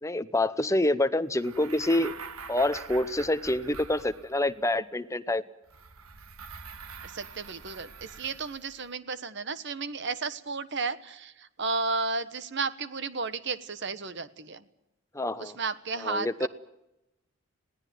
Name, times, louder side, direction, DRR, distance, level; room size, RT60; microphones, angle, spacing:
voice 1, 0.0-2.2 2.5-5.4 15.1-15.6 16.0-16.5, left 1 dB, 15° left, 12 dB, 0.8 m, -27 dB
sound 1, 1.3-4.6 5.7-8.8, right 5 dB, 85° right, 1.6 m, -45 dB
voice 2, 7.0-14.6 15.4-16.5, right 4 dB, 55° right, 14 dB, 1.3 m, -33 dB
21.0 x 17.5 x 9.3 m, 0.90 s
head